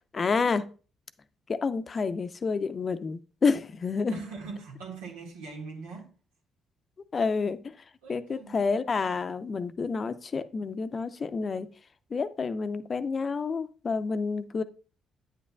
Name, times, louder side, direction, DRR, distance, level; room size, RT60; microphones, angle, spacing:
voice 1, 0.1-0.7 1.5-4.2 7.1-7.6 8.1-11.7 12.1-14.6, left 4 dB, 40° left, 0.7 m, -29 dB
voice 2, 4.1-6.2 8.0-8.6, right 4 dB, 80° right, 1.8 m, -41 dB
8.9 x 8.5 x 2.3 m
hypercardioid pair, 45°, 0 cm